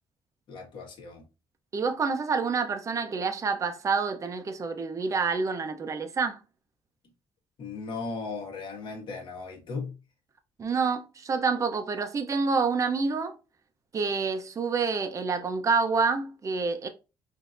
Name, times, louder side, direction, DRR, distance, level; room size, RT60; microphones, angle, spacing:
voice 1, 0.5-1.2 7.6-9.9, left 4 dB, 55° left, 1.5 m, -37 dB
voice 2, 1.7-6.4 10.6-13.4 13.9-16.9, right 4 dB, 35° right, 0.6 m, -27 dB
5.0 x 2.7 x 2.6 m
cardioid pair, 115°, 10 cm